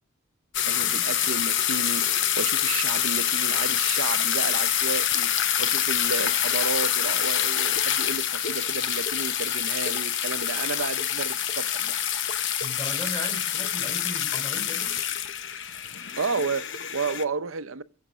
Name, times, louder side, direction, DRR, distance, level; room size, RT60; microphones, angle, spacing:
sound 1, 0.5-17.2, left 10 dB, 55° left, 0.8 m, -26 dB
voice 1, 0.7-12.0 16.2-17.8, right 4 dB, 65° right, 0.7 m, -32 dB
voice 2, 12.6-15.0, left 1 dB, 20° left, 3.2 m, -37 dB
22.0 x 8.1 x 6.1 m
head